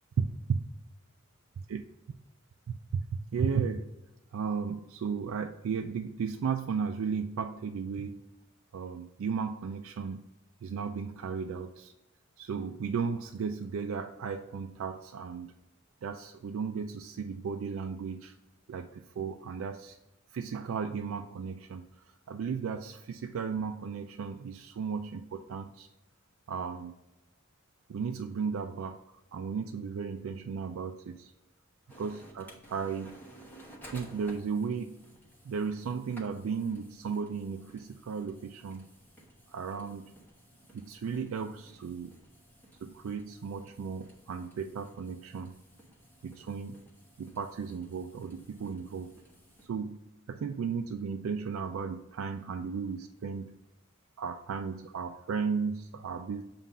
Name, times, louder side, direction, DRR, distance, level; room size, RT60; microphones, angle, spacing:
voice 1, 0.2-0.6 1.7-1.8 2.7-3.9 4.3-8.2 8.7-10.3 10.6-11.9 12.4-15.5 16.0-18.3 18.7-20.0 20.3-21.8 22.3-25.9 26.5-26.9 27.9-29.0 29.3-31.3 32.0-33.2 33.9-35.1 35.4-38.9 39.5-40.1 40.7-42.1 42.8-45.5 46.2-46.8 47.2-49.1 49.7-50.0 50.3-53.6 54.2-56.4, right 6 dB, 75° right, 5 dB, 0.3 m, -35 dB
sound 1, 31.9-49.7, right 1 dB, 10° left, 1.0 m, -56 dB
7.3 x 2.5 x 5.4 m, 0.97 s
head